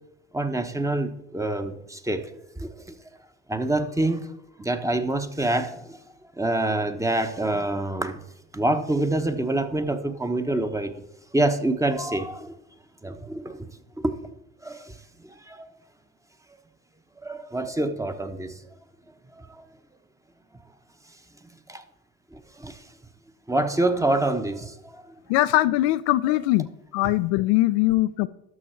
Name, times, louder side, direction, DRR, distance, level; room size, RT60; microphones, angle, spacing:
voice 1, 0.3-2.3 2.6-2.9 3.5-4.3 4.6-6.0 6.4-8.2 8.5-11.0 11.3-12.6 13.0-13.7 14.0-14.2 14.6-15.0 15.5-15.7 17.2-18.5 19.4-19.6 21.7-21.8 22.3-22.8 23.5-25.1 27.0-27.1, right 2 dB, 10° right, 8 dB, 0.9 m, -26 dB
voice 2, 25.3-26.7 26.9-28.3, left 17 dB, 70° left, 13 dB, 0.5 m, -21 dB
12.0 x 6.1 x 4.5 m, 0.83 s
hypercardioid pair, 70°, 34 cm